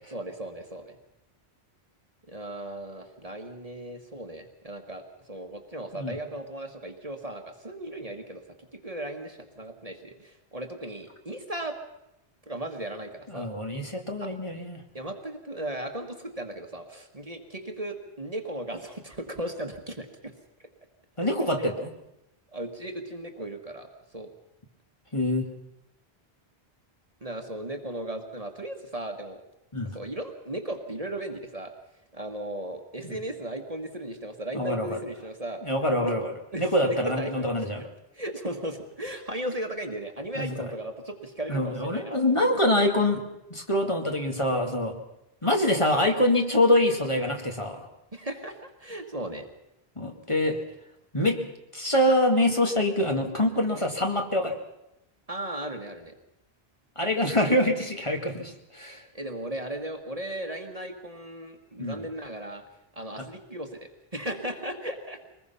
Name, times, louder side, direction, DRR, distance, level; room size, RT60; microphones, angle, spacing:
voice 1, 0.1-1.0 2.3-5.0 5.3-11.8 12.5-13.5 14.2-14.3 14.9-20.3 21.6-21.7 22.5-24.3 27.2-29.4 29.9-31.7 32.1-36.1 36.5-37.5 37.8-42.5 48.1-49.5 55.3-56.1 59.1-62.6 62.9-65.3, right 1 dB, 35° right, 5 dB, 1.6 m, -36 dB
voice 2, 13.3-14.8 21.2-21.9 25.1-25.5 29.7-30.0 33.0-33.2 34.5-35.0 35.6-36.3 36.6-37.8 40.4-40.7 41.5-43.2 43.5-44.9 45.4-47.9 50.0-50.6 51.1-51.4 51.7-54.5 57.0-59.0 61.8-62.1, left 1 dB, 30° left, 2 dB, 2.2 m, -25 dB
23.5 x 20.5 x 5.7 m, 0.86 s
omnidirectional pair, 1.1 m